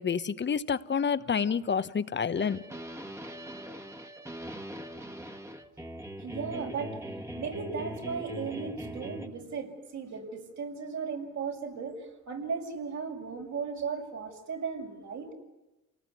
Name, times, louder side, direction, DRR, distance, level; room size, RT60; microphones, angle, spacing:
voice 1, 0.0-2.6, left 6 dB, 35° left, 1.2 m, -28 dB
sound 1, 2.4-9.3, equal, 10° right, 1.9 m, -41 dB
voice 2, 6.2-7.0 7.3-15.3, right 5 dB, 65° right, 6.3 m, -36 dB
28.5 x 19.0 x 9.9 m
cardioid pair, 90°, 30 cm